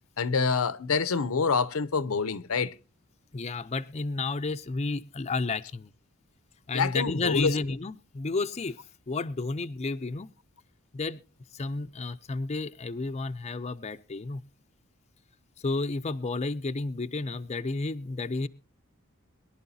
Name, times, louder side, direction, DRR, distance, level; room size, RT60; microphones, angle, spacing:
voice 1, 0.2-2.7 6.7-7.5, left 5 dB, 75° left, 0.7 m, -26 dB
voice 2, 3.3-5.9 6.7-8.8 9.1-10.3 10.9-11.2 11.5-14.4 15.6-18.5, left 3 dB, 30° left, 0.5 m, -31 dB
22.5 x 11.5 x 2.8 m
head